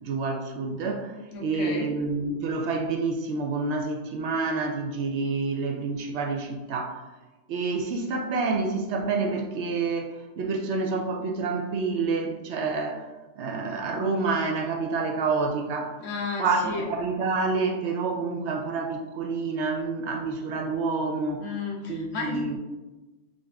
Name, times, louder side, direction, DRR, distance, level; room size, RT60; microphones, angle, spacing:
voice 1, 0.0-1.1 1.4-7.0 7.5-13.1 13.4-16.0 16.4-21.5 21.9-22.6, right 4 dB, 70° right, 3 dB, 0.8 m, -28 dB
voice 2, 1.3-1.9 16.0-16.9 21.4-22.6, left 3 dB, 75° left, 0 dB, 1.2 m, -33 dB
5.2 x 2.5 x 3.3 m, 1.1 s
omnidirectional pair, 1.3 m